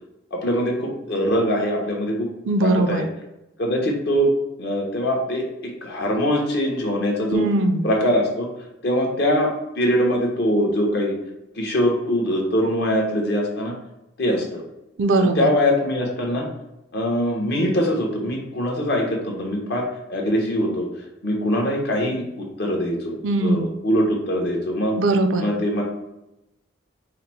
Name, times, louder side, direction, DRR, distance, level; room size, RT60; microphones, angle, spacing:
voice 1, 0.3-2.3 2.6-3.0 3.6-4.3 4.6-7.5 7.8-8.5 8.8-11.1 11.5-13.7 14.2-14.6 15.4-16.5 16.9-20.9 21.2-25.0 25.4-25.8, equal, 55° left, 0 dB, 1.0 m, -22 dB
voice 2, 2.5-3.1 7.3-7.9 15.0-15.5 23.2-23.7 25.0-25.5, right 2 dB, 75° right, 6 dB, 0.5 m, -20 dB
4.8 x 2.1 x 4.5 m, 0.93 s
head